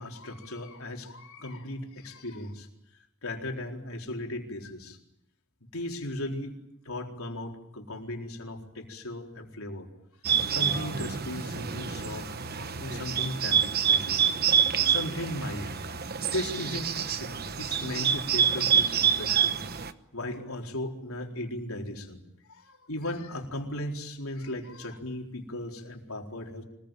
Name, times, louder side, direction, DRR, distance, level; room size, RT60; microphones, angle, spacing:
voice 1, 0.0-2.7 3.2-5.0 5.7-6.5 6.8-9.9 10.5-12.3 12.8-14.2 14.8-15.8 16.2-19.6 20.1-22.2 22.5-26.6, left 1 dB, 75° left, 2 dB, 4.3 m, -36 dB
Bird, 10.2-19.9, right 8 dB, 45° right, 1.1 m, -27 dB
25.5 x 21.0 x 9.2 m, 0.83 s
head